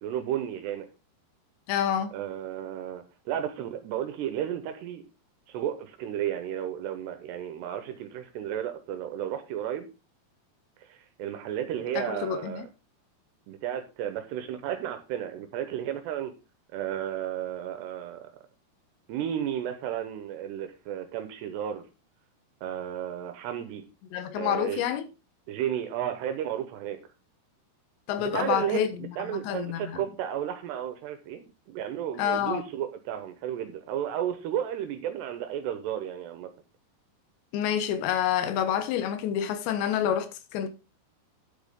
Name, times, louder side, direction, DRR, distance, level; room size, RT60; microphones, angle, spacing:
voice 1, 0.0-0.9 2.1-5.0 5.5-9.9 10.9-12.7 13.5-16.3 16.7-18.2 19.1-21.8 22.6-23.8 24.4-24.8 25.5-27.0 28.2-36.5, right 10 dB, 80° right, 3.0 m, -33 dB
voice 2, 1.7-2.1 12.0-12.6 24.1-25.1 28.1-30.0 32.2-32.6 37.5-40.7, left 9 dB, 85° left, 3.2 m, -28 dB
9.9 x 8.0 x 3.6 m
omnidirectional pair, 5.0 m